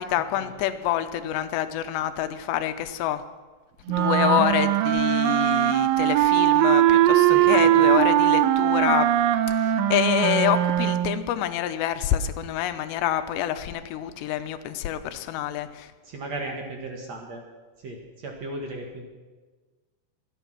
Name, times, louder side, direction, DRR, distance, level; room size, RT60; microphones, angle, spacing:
voice 1, 0.0-3.2 3.9-9.1 9.5-15.9, left 11 dB, 90° left, 10 dB, 3.0 m, -27 dB
sound 1, 3.9-11.2, right 13 dB, 85° right, 2.0 m, -20 dB
voice 2, 16.0-17.4 17.8-19.0, right 2 dB, 55° right, 2 dB, 2.3 m, -35 dB
25.0 x 9.2 x 6.0 m, 1.3 s
omnidirectional pair, 4.9 m